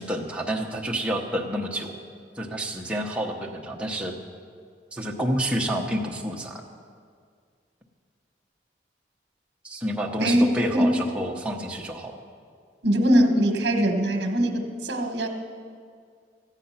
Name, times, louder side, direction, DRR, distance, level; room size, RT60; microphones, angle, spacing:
voice 1, 0.0-1.9 2.4-4.1 4.9-6.6 9.6-12.1, right 1 dB, 5° right, -1 dB, 0.9 m, -29 dB
voice 2, 12.8-15.3, equal, 65° right, 4 dB, 1.1 m, -21 dB
13.5 x 9.0 x 5.7 m, 2.1 s
head